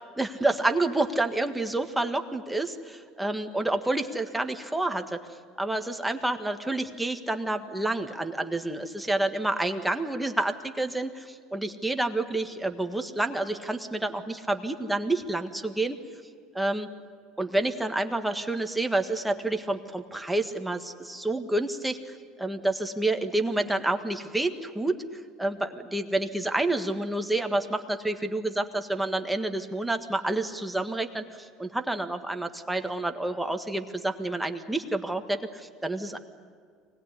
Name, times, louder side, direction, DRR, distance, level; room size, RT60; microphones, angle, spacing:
voice 1, 0.2-5.2 5.6-16.0 16.5-16.9 17.4-36.2, right 2 dB, 5° right, 6 dB, 1.6 m, -29 dB
24.5 x 19.5 x 9.7 m, 2.1 s
supercardioid pair, 120°, 0 cm